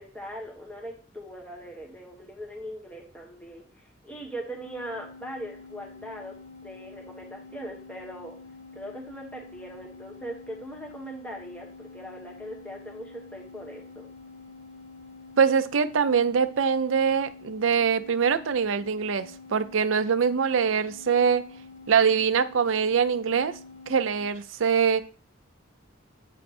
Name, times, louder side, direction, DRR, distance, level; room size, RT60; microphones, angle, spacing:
voice 1, 0.0-6.3 6.6-8.3 8.7-14.1, right 1 dB, 5° left, -1 dB, 1.3 m, -40 dB
sound 1, 4.7-24.2, left 3 dB, 70° left, 2.0 m, -47 dB
voice 2, 15.4-21.4 21.9-23.6 23.9-25.0, right 6 dB, 80° right, 11 dB, 0.5 m, -23 dB
8.2 x 3.3 x 4.2 m, 0.38 s
head